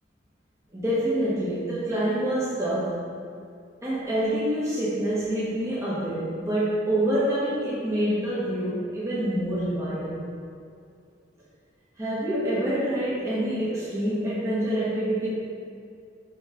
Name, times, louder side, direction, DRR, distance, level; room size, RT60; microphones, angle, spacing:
voice 1, 0.7-3.0 3.8-10.2 12.0-15.3, right 1 dB, 15° right, -9 dB, 1.3 m, -26 dB
6.2 x 5.5 x 5.0 m, 2.4 s
head